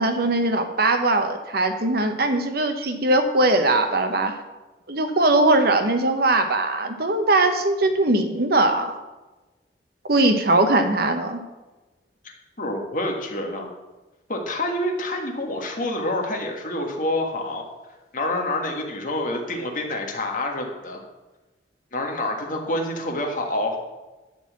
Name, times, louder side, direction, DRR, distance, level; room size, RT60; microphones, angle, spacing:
voice 1, 0.0-4.4 4.9-8.9 10.1-11.4, right 2 dB, 60° right, 7 dB, 1.0 m, -20 dB
voice 2, 12.6-13.7 14.3-17.6 18.1-21.0 21.9-23.8, left 1 dB, 50° left, 2 dB, 1.6 m, -27 dB
11.0 x 4.1 x 7.5 m, 1.1 s
head